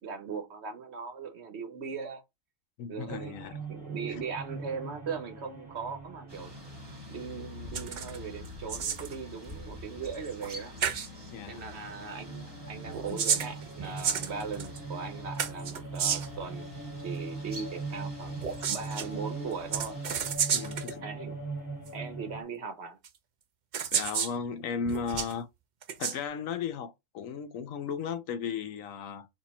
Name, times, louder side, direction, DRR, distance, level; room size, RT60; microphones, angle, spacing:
voice 1, 0.0-2.2 2.9-3.3 3.7-6.5 7.1-10.8 11.5-16.7 17.0-18.4 18.7-20.0 21.0-21.4 21.9-23.0, right 5 dB, 55° right, 1.1 m, -39 dB
voice 2, 2.8-3.6 4.1-4.2 11.3-11.6 13.1-13.2 20.5-21.0 23.9-25.5 26.0-29.3, left 6 dB, 75° left, 1.0 m, -35 dB
sound 1, 3.1-11.2 11.5-22.4, right 3 dB, 15° left, 1.4 m, -41 dB
sound 2, 6.3-20.4, left 2 dB, 25° right, 1.3 m, -48 dB
sound 3, 7.7-8.2 8.5-9.2 10.4-10.5 10.8-11.1 12.9-14.8 15.4-16.4 18.4-19.1 19.7-20.9 21.9-22.0 23.0-23.1 23.7-24.4 24.9-25.3 25.8-26.2, right 7 dB, 75° right, 0.4 m, -31 dB
4.3 x 2.7 x 4.2 m
omnidirectional pair, 1.4 m